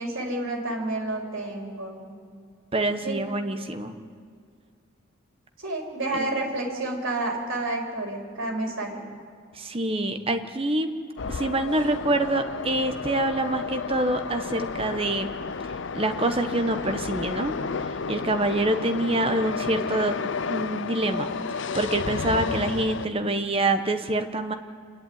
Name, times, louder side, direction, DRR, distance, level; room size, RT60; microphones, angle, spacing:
voice 1, 0.0-2.0 3.0-3.2 5.6-9.0 18.6-18.8, right 2 dB, 60° right, -1 dB, 3.9 m, -30 dB
voice 2, 2.7-3.9 6.1-6.3 9.6-10.9 11.3-15.3 15.9-17.5 18.1-20.1 20.5-21.3 21.7-24.5, right 2 dB, 25° right, 7 dB, 1.1 m, -26 dB
sound 1, 11.2-23.1, left 5 dB, 55° left, 0.5 m, -32 dB
27.5 x 11.0 x 9.5 m, 2.2 s
head